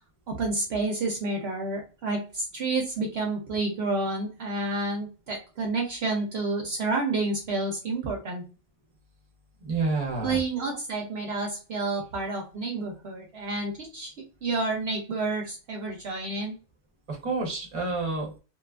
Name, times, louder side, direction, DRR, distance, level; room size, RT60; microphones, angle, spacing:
voice 1, 0.3-8.4 10.2-14.1 14.4-16.6, right 3 dB, 60° right, 0 dB, 0.8 m, -29 dB
voice 2, 9.6-10.4 17.1-18.3, right 3 dB, 30° right, 0 dB, 0.8 m, -29 dB
3.0 x 2.3 x 2.3 m, 0.33 s
omnidirectional pair, 1.3 m